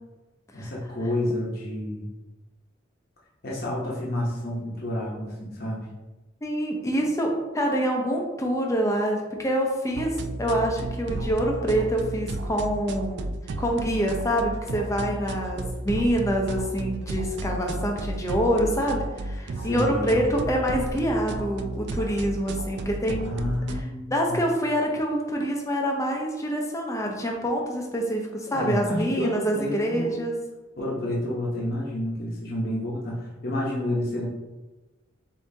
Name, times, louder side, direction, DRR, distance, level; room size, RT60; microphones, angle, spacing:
voice 1, 0.5-2.1 3.4-5.8 19.5-20.2 23.2-24.4 28.5-30.2 30.8-34.3, left 1 dB, 55° left, -5 dB, 1.0 m, -29 dB
voice 2, 6.4-13.3 13.6-23.2 24.1-30.3, equal, 15° left, 0 dB, 0.7 m, -26 dB
sound 1, 9.9-23.8, right 2 dB, 60° right, 0.3 m, -33 dB
6.9 x 2.8 x 2.7 m, 1.1 s
head